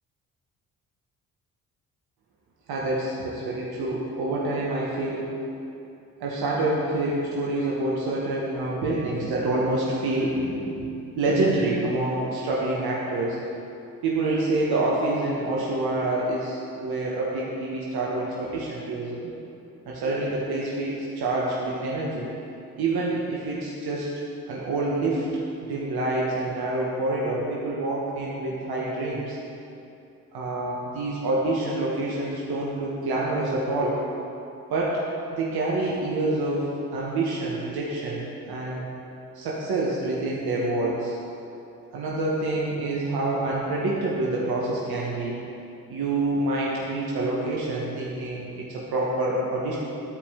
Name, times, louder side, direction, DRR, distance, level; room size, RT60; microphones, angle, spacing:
voice 1, 2.7-5.3 6.2-10.9 11.2-13.4 14.0-19.3 19.9-22.3 22.8-24.1 24.5-25.3 25.7-29.4 30.3-34.0 34.7-35.0 35.3-38.8 39.3-41.2 41.9-45.4 45.9-49.8, right 2 dB, 60° right, -4 dB, 1.3 m, -27 dB
12.0 x 4.9 x 3.5 m, 2.7 s
hypercardioid pair, 45°, 42 cm